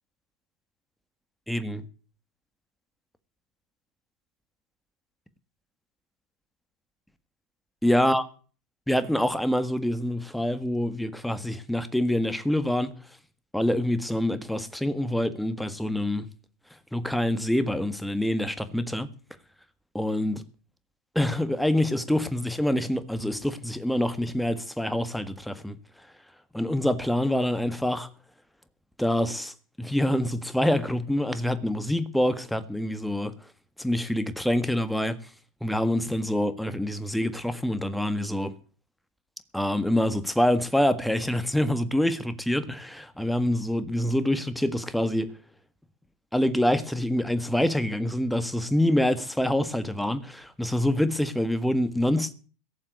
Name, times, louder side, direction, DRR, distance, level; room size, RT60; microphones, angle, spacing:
voice 1, 1.5-1.9 7.8-8.2 8.9-12.9 13.5-16.3 16.9-19.1 19.9-20.4 21.2-25.8 26.5-28.1 29.0-33.3 33.8-35.2 35.6-38.5 39.5-45.3 46.3-52.3, left 1 dB, 5° left, 1.7 m, -26 dB
17.5 x 7.3 x 9.6 m
hypercardioid pair, 95°, 0 cm